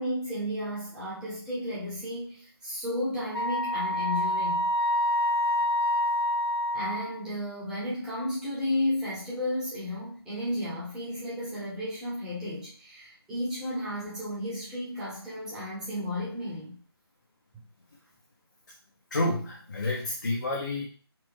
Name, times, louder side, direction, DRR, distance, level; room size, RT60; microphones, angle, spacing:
voice 1, 0.0-4.7 6.7-16.8, left 1 dB, 5° right, 0.8 m, -33 dB
Wind instrument woodwind instrument, 3.3-7.2, left 1 dB, 80° left, 0.4 m, -27 dB
voice 2, 19.1-20.8, left 2 dB, 45° left, 0.7 m, -29 dB
4.2 x 2.1 x 3.4 m
figure-of-eight pair, 150°, 14 cm